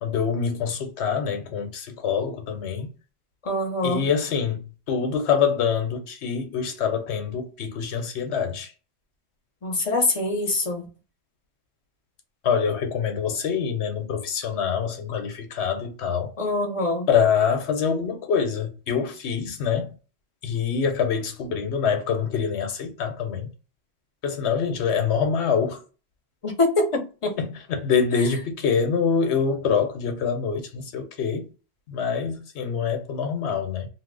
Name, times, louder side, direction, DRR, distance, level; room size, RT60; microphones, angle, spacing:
voice 1, 0.0-2.9 3.8-8.7 12.4-16.3 17.1-19.9 20.4-23.5 24.2-25.8 27.4-31.5 31.9-33.9, left 6 dB, 90° left, 1.0 m, -25 dB
voice 2, 3.4-4.1 9.6-10.9 16.4-17.1 26.4-27.4, left 2 dB, 35° left, 0.7 m, -24 dB
2.7 x 2.1 x 3.7 m
omnidirectional pair, 1.1 m